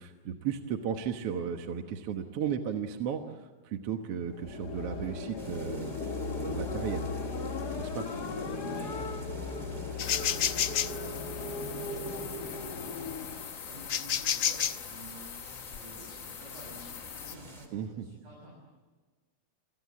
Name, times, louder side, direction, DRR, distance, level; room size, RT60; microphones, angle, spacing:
voice 1, 0.0-7.1 7.8-8.1 17.7-18.1, right 8 dB, 60° right, 5 dB, 2.0 m, -35 dB
sound 1, 4.2-13.6, left 3 dB, 40° left, 1.6 m, -37 dB
sound 2, 5.4-17.7, right 1 dB, 15° right, 3.2 m, -51 dB
voice 2, 8.6-9.1 9.8-13.0 13.5-18.6, right 1 dB, 80° right, -2 dB, 8.7 m, -50 dB
sound 3, 10.0-17.3, left 9 dB, 85° left, 1.0 m, -34 dB
29.0 x 26.0 x 7.6 m, 1.3 s
omnidirectional pair, 3.5 m